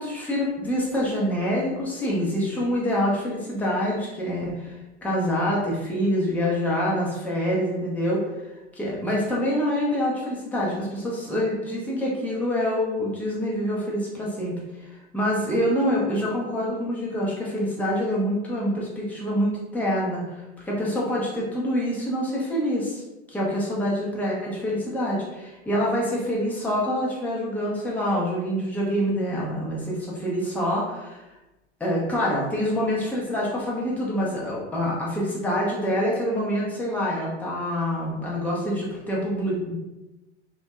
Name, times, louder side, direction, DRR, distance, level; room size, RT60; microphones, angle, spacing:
voice 1, 0.0-4.8 5.0-8.5 8.7-23.0 23.3-31.2 31.8-39.8, equal, 5° left, -5 dB, 0.6 m, -26 dB
2.5 x 2.1 x 2.3 m, 1.0 s
hypercardioid pair, 95°, 35 cm